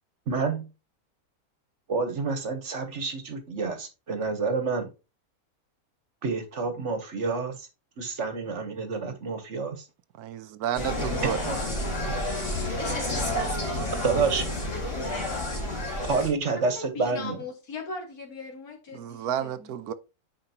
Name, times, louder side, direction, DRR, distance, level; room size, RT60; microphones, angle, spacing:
voice 1, 0.3-0.7 1.9-4.9 6.2-7.7 8.0-9.8 11.4-11.6 12.0-12.2 14.0-14.7 16.0-17.4, right 4 dB, 55° right, 1.4 m, -29 dB
voice 2, 10.1-11.4 18.9-19.9, right 10 dB, 85° right, 1.2 m, -31 dB
Insect, 10.7-16.3, left 1 dB, 55° left, 2.6 m, -29 dB
voice 3, 16.5-19.9, left 4 dB, 80° left, 2.3 m, -40 dB
9.0 x 4.9 x 2.9 m
omnidirectional pair, 1.6 m